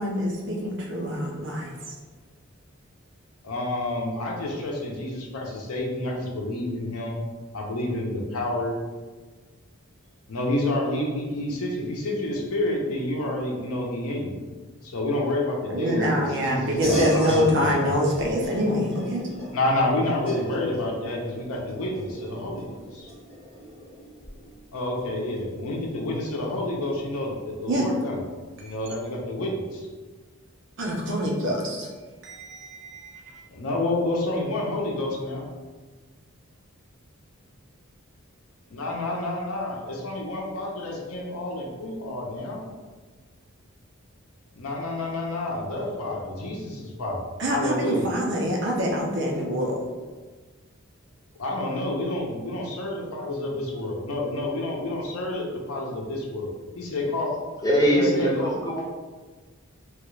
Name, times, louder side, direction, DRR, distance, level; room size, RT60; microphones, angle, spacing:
voice 1, 0.0-1.7 15.7-19.2 27.7-27.9 28.6-28.7 30.8-31.9 32.2-33.4 47.4-49.8, equal, 55° right, -1 dB, 0.6 m, -25 dB
voice 2, 3.4-7.2 7.5-8.8 10.3-14.4 14.8-17.9 19.5-23.1 24.7-28.2 28.6-29.9 33.5-35.5 38.7-42.6 44.6-48.1 51.4-57.4 57.9-58.3, left 1 dB, 90° left, -1 dB, 0.7 m, -29 dB
sound 1, 16.8-26.7, left 1 dB, 5° right, 1.4 m, -37 dB
voice 3, 57.6-58.8, equal, 15° left, -3 dB, 0.6 m, -21 dB
3.2 x 2.4 x 3.1 m, 1.4 s
head